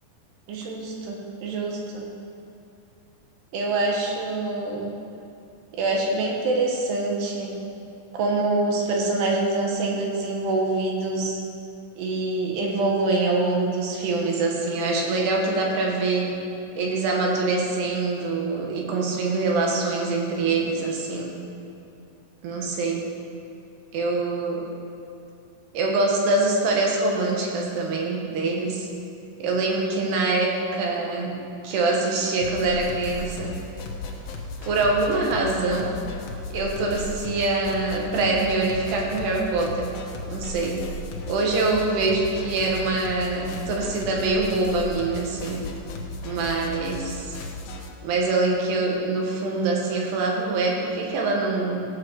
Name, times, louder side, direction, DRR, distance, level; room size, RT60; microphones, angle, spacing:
voice 1, 0.5-2.0 3.5-4.9 5.7-7.6 8.1-11.4 12.0-16.3 16.8-21.3 22.4-23.1 23.9-24.6 25.7-28.9 29.4-31.3 31.6-33.5 34.6-35.9 36.5-39.9 40.3-40.8 41.3-45.6 46.2-47.4 48.0-51.9, right 3 dB, 85° right, -1 dB, 3.6 m, -24 dB
sound 1, 32.4-47.9, left 2 dB, 70° left, 2.8 m, -35 dB
16.0 x 6.4 x 6.4 m, 2.6 s
omnidirectional pair, 4.6 m